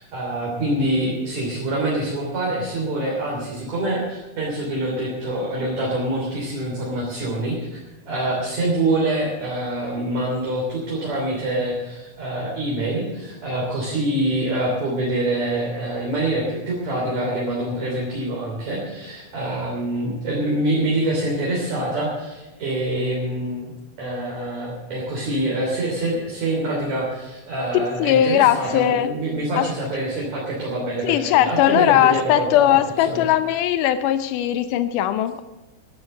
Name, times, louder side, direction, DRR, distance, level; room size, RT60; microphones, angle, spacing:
voice 1, 0.0-7.8 8.1-23.7 24.0-32.8 33.1-33.3, right 1 dB, 45° right, -4 dB, 4.3 m, -25 dB
voice 2, 27.7-29.1 29.5-29.7 31.0-35.4, left 11 dB, 90° left, 10 dB, 1.8 m, -19 dB
13.5 x 11.5 x 6.6 m, 1.1 s
omnidirectional pair, 4.6 m